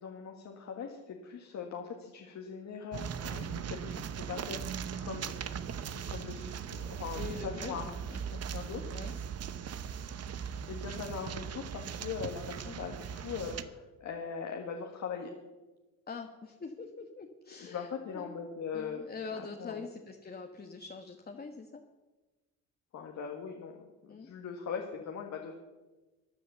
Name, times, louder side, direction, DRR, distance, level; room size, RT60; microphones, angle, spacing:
voice 1, 0.0-5.3 6.1-7.9 8.5-9.0 10.3-15.3 17.7-19.0 19.3-19.8 22.9-25.5, left 6 dB, 65° left, 2 dB, 1.9 m, -41 dB
sound 1, 2.9-13.6, right 7 dB, 55° right, 1.0 m, -39 dB
voice 2, 7.2-8.2 8.9-9.1 16.1-18.4 18.7-21.8 24.1-24.3, left 4 dB, 30° left, 3 dB, 1.4 m, -44 dB
15.5 x 10.0 x 7.0 m, 1.2 s
cardioid pair, 90°, 30 cm